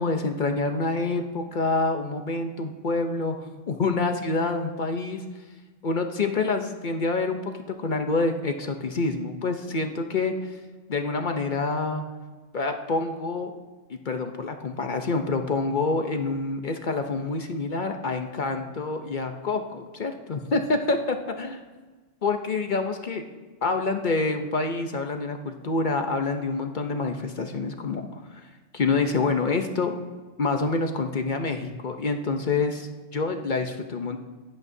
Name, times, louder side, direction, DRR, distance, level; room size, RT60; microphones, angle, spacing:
voice 1, 0.0-5.2 5.8-7.5 7.8-10.3 10.9-12.0 12.5-13.5 13.9-21.6 22.2-23.2 23.6-28.5 28.7-30.0 30.4-34.2, left 3 dB, 45° left, 5 dB, 0.7 m, -27 dB
16.5 x 11.0 x 2.7 m, 1.3 s
omnidirectional pair, 1.3 m